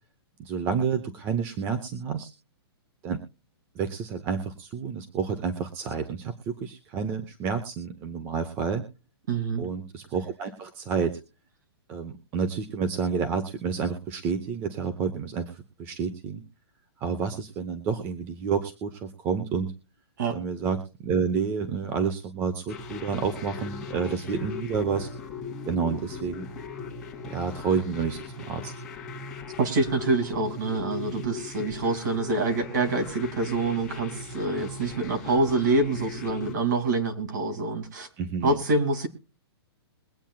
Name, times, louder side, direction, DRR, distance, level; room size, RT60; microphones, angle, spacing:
voice 1, 0.4-2.3 3.0-3.2 3.7-8.8 9.6-11.2 11.9-16.4 17.0-19.7 20.3-25.1 25.7-26.5 27.2-28.7 38.2-38.6, right 6 dB, 15° right, 9 dB, 0.9 m, -29 dB
voice 2, 9.3-9.6 20.2-20.4 29.6-38.1 38.4-39.1, right 2 dB, 45° right, 7 dB, 2.7 m, -26 dB
sound 1, 22.7-36.5, left 5 dB, 5° left, 2.8 m, -39 dB
22.5 x 8.9 x 2.3 m, 0.35 s
hypercardioid pair, 175°, 14 cm